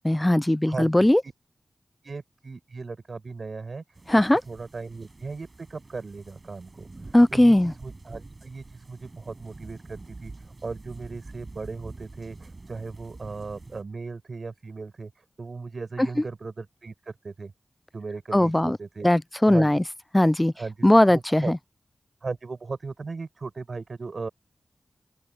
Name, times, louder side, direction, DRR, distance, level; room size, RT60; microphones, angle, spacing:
voice 1, 0.0-1.2 4.1-4.4 7.1-7.7 16.0-16.2 18.3-18.8 19.0-19.8 20.1-20.5 20.8-21.6, left 1 dB, 15° left, 0.5 m, -19 dB
voice 2, 0.6-1.3 2.0-17.5 17.9-19.1 19.4-19.8 20.5-21.5 22.2-24.3, right 4 dB, 65° right, 7.5 m, -37 dB
sound 1, 3.9-13.8, right 3 dB, 45° right, 6.7 m, -46 dB
open air
wide cardioid pair, 60°, 0 cm